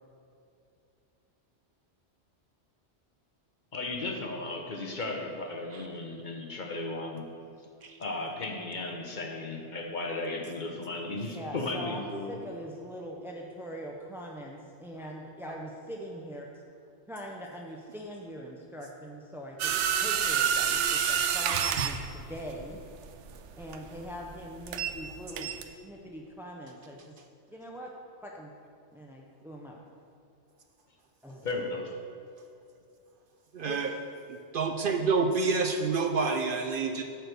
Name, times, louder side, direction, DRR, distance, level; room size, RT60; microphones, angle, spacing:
voice 1, 3.7-7.3 8.0-12.4 31.4-31.9, left 2 dB, 45° left, 2 dB, 0.9 m, -35 dB
voice 2, 11.4-16.5 17.1-22.8 23.6-27.1 27.5-27.9 28.2-28.5 28.9-29.8 31.2-31.6 33.6-33.8, equal, 5° right, -1 dB, 0.3 m, -42 dB
sound 1, 19.6-25.1 25.4-25.6, right 8 dB, 85° right, 0.9 m, -28 dB
voice 3, 33.5-33.9 34.3-37.0, right 4 dB, 60° right, 5 dB, 0.7 m, -28 dB
8.0 x 4.6 x 6.7 m, 2.6 s
omnidirectional pair, 1.2 m